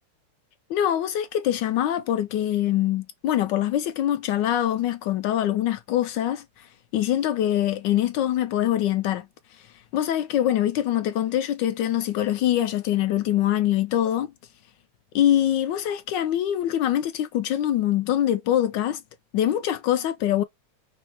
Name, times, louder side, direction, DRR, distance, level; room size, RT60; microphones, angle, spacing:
voice 1, 0.7-6.7 6.9-9.3 9.6-14.3 15.1-19.0 19.3-20.4, left 11 dB, 75° left, 1.0 m, -24 dB
5.3 x 2.1 x 4.2 m
omnidirectional pair, 2.4 m